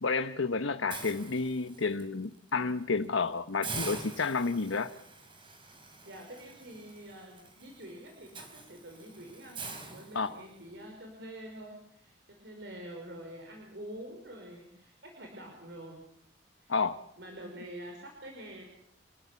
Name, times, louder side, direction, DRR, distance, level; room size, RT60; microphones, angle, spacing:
voice 1, 0.0-4.9 10.1-10.4 16.7-17.0, left 4 dB, 80° left, 9 dB, 1.0 m, -30 dB
Hiss, 0.9-2.0 2.5-2.7 3.0-3.1 3.6-10.7, right 3 dB, 25° right, 4.3 m, -44 dB
voice 2, 5.9-9.6 9.9-16.0 16.6-16.7 17.2-18.6, right 1 dB, 60° right, 1 dB, 5.2 m, -46 dB
27.5 x 15.0 x 8.4 m, 0.69 s
head